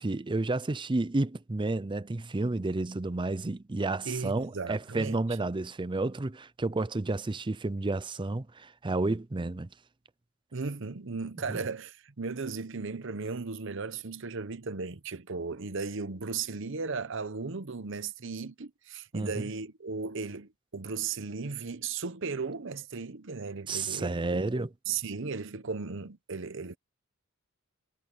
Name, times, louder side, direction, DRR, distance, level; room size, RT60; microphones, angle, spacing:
voice 1, 0.0-9.7 11.5-11.6 19.1-19.3 23.7-24.7, right 2 dB, 25° right, 0.6 m, -31 dB
voice 2, 4.0-5.2 10.5-26.8, right 4 dB, 65° right, 0.9 m, -36 dB
head